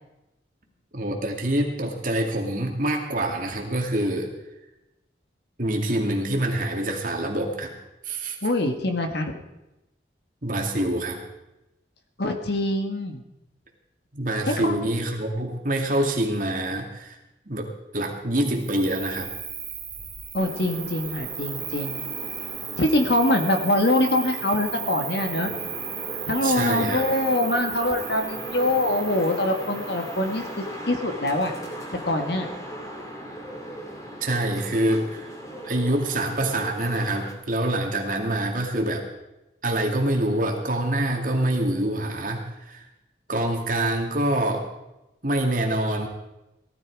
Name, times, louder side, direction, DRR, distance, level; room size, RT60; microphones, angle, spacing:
voice 1, 0.9-4.3 5.6-7.7 8.0-8.4 10.4-11.2 14.1-17.2 17.5-19.3 26.4-27.0 34.2-35.3 35.6-39.1 39.6-42.8 43.3-44.7 45.2-46.1, right 1 dB, 45° right, 1 dB, 2.4 m, -25 dB
voice 2, 8.4-9.4 12.2-13.2 14.5-14.7 20.3-22.0 22.8-25.5 26.3-31.5 32.0-32.5, left 1 dB, 65° left, 5 dB, 1.7 m, -24 dB
Cricket, 18.6-30.5, right 8 dB, 20° right, 2.4 m, -36 dB
sound 1, 20.4-37.3, equal, 20° left, 2.3 m, -38 dB
18.0 x 13.5 x 4.8 m, 0.95 s
head